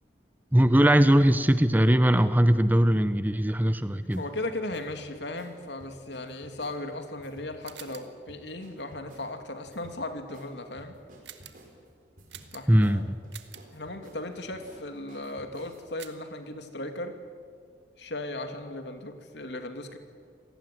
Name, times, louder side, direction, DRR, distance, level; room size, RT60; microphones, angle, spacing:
voice 1, 0.5-4.2 12.7-13.2, right 1 dB, 10° right, 12 dB, 0.7 m, -20 dB
voice 2, 4.1-11.0 12.5-13.0 13.7-17.2 18.0-20.0, left 2 dB, 75° left, 6 dB, 2.6 m, -37 dB
sound 1, 4.1-4.3 4.7-5.0 5.4-5.5 5.8-6.8 7.2-7.5 7.9-8.0 8.3-9.3 9.7-10.0 10.3-10.5 10.8-11.7 12.2-12.5 12.8-13.0 13.2-15.9, right 1 dB, 45° right, 5.5 m, -52 dB
sound 2, 7.6-8.2 11.2-11.7 12.3-12.9 13.3-13.7 16.0-16.3, right 11 dB, 80° right, 1.8 m, -47 dB
28.0 x 19.0 x 9.4 m, 2.1 s
head